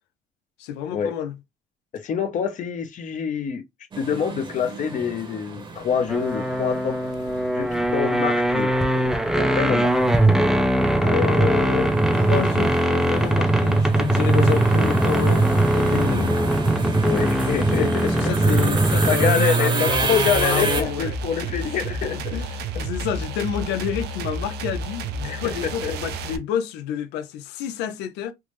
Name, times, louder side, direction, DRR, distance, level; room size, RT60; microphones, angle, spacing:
voice 1, 0.6-1.4 11.0-16.4 17.5-21.2 21.8-28.3, left 9 dB, 90° left, 0.5 m, -29 dB
voice 2, 1.9-3.6 4.0-7.0 7.5-9.9 17.0-17.9 19.1-22.4 25.2-25.9, left 7 dB, 50° left, 0.6 m, -26 dB
sound 1, 3.9-20.8, right 4 dB, 30° right, 0.9 m, -29 dB
sound 2, 6.1-19.5, right 1 dB, 5° right, 0.4 m, -20 dB
sound 3, 19.8-26.4, right 3 dB, 75° right, 0.5 m, -31 dB
3.3 x 2.0 x 3.1 m
cardioid pair, 110°, 17 cm